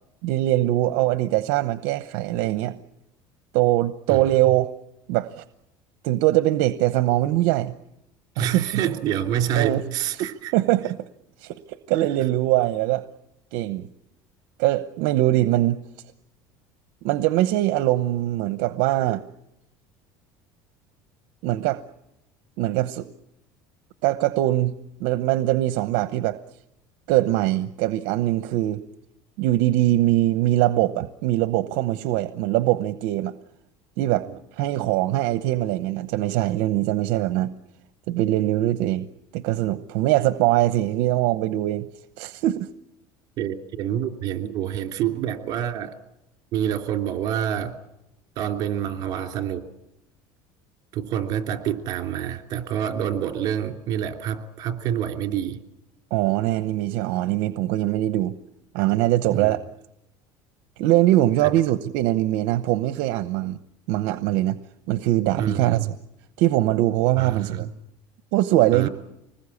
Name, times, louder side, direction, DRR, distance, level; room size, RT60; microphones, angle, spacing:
voice 1, 0.2-2.8 3.5-4.7 5.1-5.4 6.0-7.7 8.4-8.7 9.5-9.8 10.2-11.0 11.4-13.1 13.5-13.9 14.6-15.8 17.0-19.2 21.4-21.8 22.6-23.1 24.0-24.7 25.0-26.4 27.1-28.8 29.4-33.3 34.0-37.5 38.1-39.1 39.3-41.8 42.2-42.7 56.1-58.3 58.7-59.6 60.8-63.6 63.9-64.6 64.9-65.9 66.4-67.7 68.3-68.9, right 15 dB, 70° right, 0.9 m, -22 dB
voice 2, 8.4-10.5 34.3-34.4 43.4-45.9 46.5-47.8 48.4-49.7 50.9-55.6 59.3-59.5 61.4-61.5 65.4-65.8 67.2-67.7 68.7-68.9, right 10 dB, 45° right, 3.0 m, -27 dB
25.5 x 20.5 x 8.5 m
cardioid pair, 150°, 9 cm